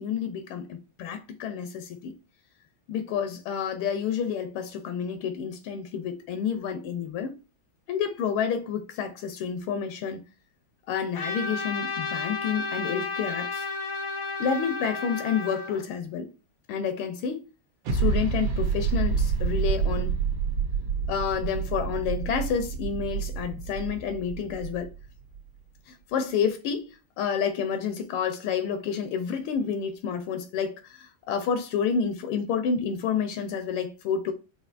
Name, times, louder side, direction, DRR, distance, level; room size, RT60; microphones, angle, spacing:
voice 1, 0.0-2.1 2.9-7.4 7.9-10.2 10.9-13.7 14.4-16.3 16.7-17.4 17.9-20.2 21.1-24.9 25.9-34.3, left 7 dB, 80° left, 1.4 m, -29 dB
Trumpet, 11.1-15.8, left 3 dB, 60° left, 0.8 m, -32 dB
sound 1, 17.9-25.4, right 6 dB, 80° right, 1.8 m, -28 dB
5.6 x 2.7 x 2.4 m
omnidirectional pair, 2.4 m